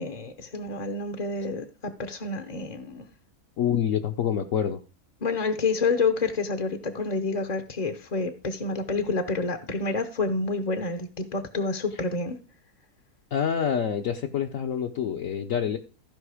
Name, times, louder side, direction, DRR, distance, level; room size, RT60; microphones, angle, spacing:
voice 1, 0.0-3.1 5.2-12.4, left 3 dB, 40° left, 0.7 m, -28 dB
voice 2, 3.6-4.8 13.3-15.8, left 8 dB, 60° left, 1.0 m, -26 dB
14.5 x 5.3 x 4.9 m
omnidirectional pair, 1.7 m